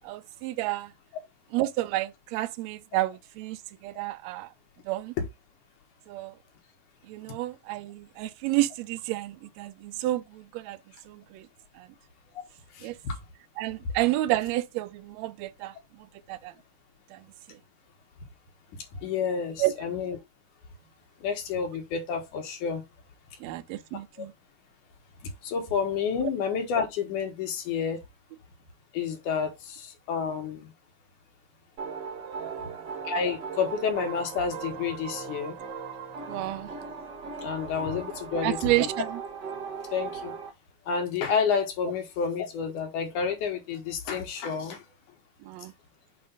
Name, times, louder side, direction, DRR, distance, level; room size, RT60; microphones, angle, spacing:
voice 1, 0.0-0.9 1.5-4.5 4.8-5.1 6.1-6.3 7.1-10.8 11.1-11.5 11.7-11.9 12.8-13.0 13.6-15.7 16.3-16.5 17.1-17.2 17.5-17.6 19.6-19.7 23.4-24.3 32.2-32.9 36.3-36.7 38.4-39.2 45.4-45.7, right 16 dB, 85° right, 1.5 m, -30 dB
voice 2, 12.7-13.2 19.0-20.2 21.2-22.8 24.2-24.3 25.4-28.0 28.9-30.7 33.0-35.6 37.4-38.9 39.9-40.3 40.9-44.8, left 6 dB, 70° left, 2.8 m, -30 dB
sound 1, 31.8-40.5, right 5 dB, 55° right, 1.2 m, -38 dB
6.8 x 2.6 x 5.3 m
omnidirectional pair, 3.7 m